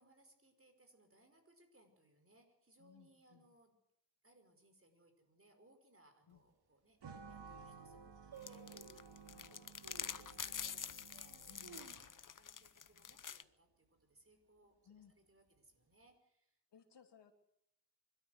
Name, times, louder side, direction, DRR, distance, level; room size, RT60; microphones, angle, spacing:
voice 1, 0.0-3.8 4.2-9.2 9.5-16.6, right 1 dB, 30° right, 7 dB, 5.3 m, -69 dB
voice 2, 2.8-3.5 6.3-6.4 9.3-9.6 11.5-12.0 14.8-15.1 16.7-17.3, left 8 dB, 80° left, 5 dB, 2.9 m, -63 dB
sound 1, 6.3-6.4 7.0-7.1 7.3-7.7 8.3-9.1 9.8-10.2 10.7-10.8 11.4-12.5 12.8-12.9 13.2-13.6 14.0-14.4 15.0-15.7 16.0-16.1, right 5 dB, 65° right, 2.5 m, -57 dB
sound 2, 7.0-12.2, right 5 dB, 80° right, 1.7 m, -56 dB
sound 3, 8.4-13.4, left 7 dB, 50° left, 0.9 m, -46 dB
24.5 x 13.0 x 8.1 m, 0.79 s
cardioid pair, 60°, 41 cm